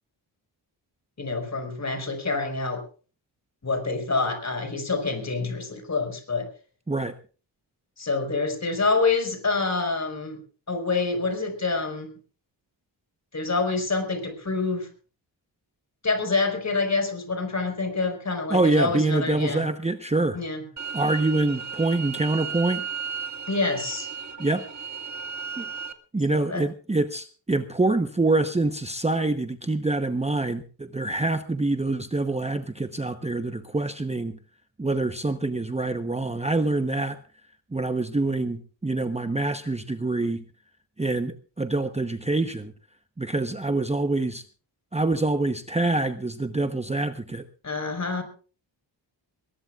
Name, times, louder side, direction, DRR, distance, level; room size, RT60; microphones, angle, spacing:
voice 1, 1.2-2.8 3.6-6.5 8.0-10.4 10.7-12.1 13.3-14.9 16.0-19.6 20.3-20.6 23.5-24.1 26.3-26.6 47.6-48.2, left 3 dB, 40° left, 6 dB, 5.4 m, -27 dB
voice 2, 18.5-20.4 20.9-22.8 24.4-24.7 25.6-25.7 26.1-34.4 34.8-37.2 37.7-40.4 41.0-42.7 43.2-44.4 44.9-47.4, right 2 dB, 15° right, 9 dB, 0.9 m, -25 dB
sound 1, 20.8-25.9, right 6 dB, 40° right, 1.9 m, -35 dB
22.0 x 20.0 x 2.4 m, 0.38 s
wide cardioid pair, 95°, 44 cm